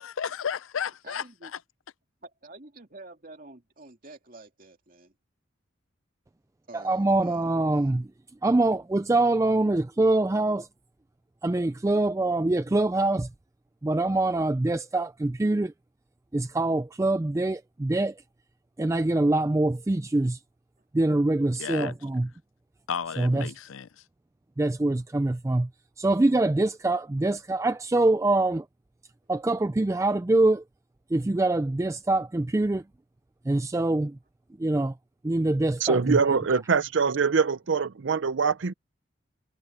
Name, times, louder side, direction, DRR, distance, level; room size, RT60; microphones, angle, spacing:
voice 1, 0.0-1.5 21.6-21.9 22.9-23.9, left 7 dB, 85° left, 0.5 m, -33 dB
voice 2, 1.0-1.5 2.2-5.1 6.7-7.5 7.7-7.9 9.2-9.4 27.2-27.3, right 2 dB, 45° right, 2.7 m, -48 dB
voice 3, 6.7-8.1 8.4-10.7 11.4-13.3 13.8-15.7 16.3-18.1 18.8-20.4 20.9-22.3 23.2-23.5 24.6-25.7 26.0-28.6 29.3-30.6 31.1-32.8 33.5-34.2 34.6-34.9 35.2-36.2, right 2 dB, 15° right, 0.3 m, -24 dB
voice 4, 35.8-38.7, right 5 dB, 65° right, 0.6 m, -24 dB
head